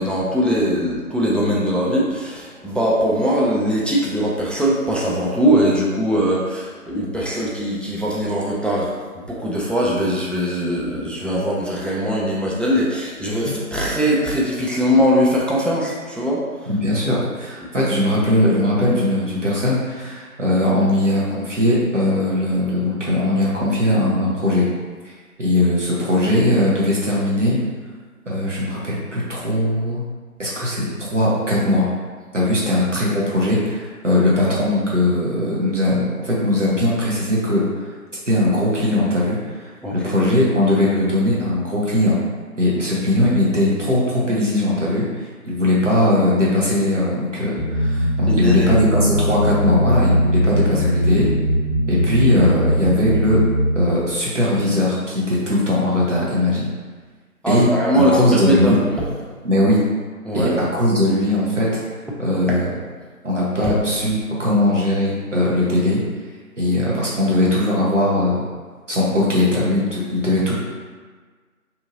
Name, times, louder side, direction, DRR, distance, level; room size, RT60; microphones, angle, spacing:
voice 1, 0.0-8.9 9.3-16.4 34.4-34.6 39.8-40.1 48.2-48.7 57.4-58.8 60.2-60.5 62.5-62.6 63.6-63.7, equal, 5° left, -5 dB, 0.3 m, -21 dB
Drum, 13.5-16.2, left 4 dB, 85° left, 0.7 m, -39 dB
voice 2, 16.7-24.7 25.0-25.1 25.4-27.6 28.3-30.0 30.4-31.9 32.3-37.8 38.3-42.2 42.6-51.3 51.9-53.4 53.7-56.7 57.5-57.7 57.9-58.8 59.4-59.9 60.3-61.8 62.2-62.7 63.2-66.0 66.6-68.4 68.9-70.5, left 1 dB, 55° right, -6 dB, 0.7 m, -19 dB
sound 1, 47.6-53.8, equal, 50° left, 0.6 m, -20 dB
2.7 x 2.6 x 2.5 m, 1.5 s
figure-of-eight pair, 170°, 45 cm